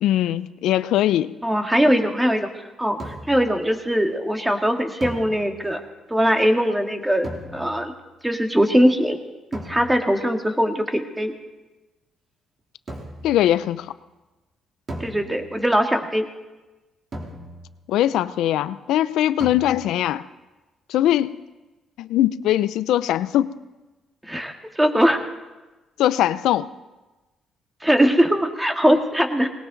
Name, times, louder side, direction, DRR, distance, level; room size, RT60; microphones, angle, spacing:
voice 1, 0.0-1.3 13.2-13.9 17.9-20.2 20.9-21.4 22.0-23.5 26.0-26.7, left 12 dB, 85° left, 15 dB, 0.5 m, -21 dB
voice 2, 1.4-2.5 2.8-5.8 6.1-7.9 8.2-9.2 9.5-11.3 15.0-16.3 24.3-25.2 27.8-29.5, equal, 10° right, 4 dB, 1.9 m, -21 dB
sound 1, 3.0-3.5 5.0-5.9 7.2-8.0 9.5-10.2 12.9-13.4 14.9-15.7 17.1-17.9 19.4-20.1, right 1 dB, 40° right, 3.2 m, -37 dB
19.5 x 18.0 x 4.0 m, 1.1 s
cardioid pair, 90°, 0 cm